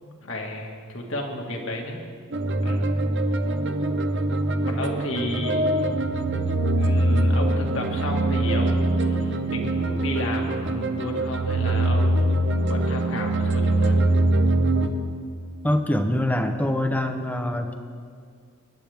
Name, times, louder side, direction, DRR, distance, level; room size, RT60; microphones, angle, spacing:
voice 1, 0.2-2.1 2.6-3.0 4.6-5.7 6.8-12.4 12.7-14.0, left 1 dB, 65° left, 1 dB, 2.0 m, -33 dB
sound 1, 2.3-14.9, right 1 dB, 60° right, 0.8 m, -23 dB
voice 2, 15.6-17.8, left 1 dB, 10° left, 6 dB, 0.8 m, -24 dB
24.5 x 10.5 x 3.6 m, 2.2 s
head